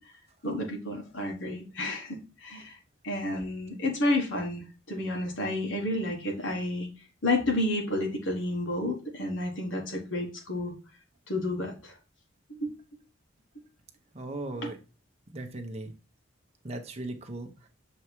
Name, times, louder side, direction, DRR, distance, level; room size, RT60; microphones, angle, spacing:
voice 1, 0.4-2.8 3.0-6.9 7.2-10.7 11.3-12.0 12.5-12.7, left 1 dB, 75° left, 1 dB, 1.6 m, -30 dB
voice 2, 14.1-14.8 15.3-15.9 16.6-17.7, right 2 dB, 30° right, 4 dB, 0.8 m, -37 dB
7.1 x 3.4 x 4.5 m, 0.33 s
head